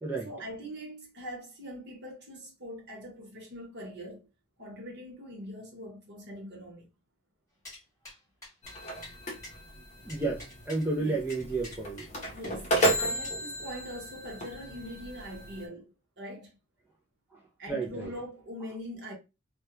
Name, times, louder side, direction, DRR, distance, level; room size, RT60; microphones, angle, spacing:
voice 1, 0.1-4.3 4.6-6.9 11.0-11.2 12.3-16.6 17.6-19.1, equal, 55° right, 1.0 m, -42 dB
sound 1, 7.7-7.8 8.1-8.2 8.4-8.8 9.0-9.2 9.4-9.5 10.1-10.8 11.3-12.5 12.8-12.9 13.2-13.4, left 2 dB, 15° left, 1.1 m, -46 dB
sound 2, 8.6-15.7, right 1 dB, 35° left, 0.6 m, -33 dB
voice 2, 10.0-12.1 17.3-17.4 17.7-18.1, right 3 dB, 10° right, 0.3 m, -32 dB
2.2 x 2.1 x 2.9 m
head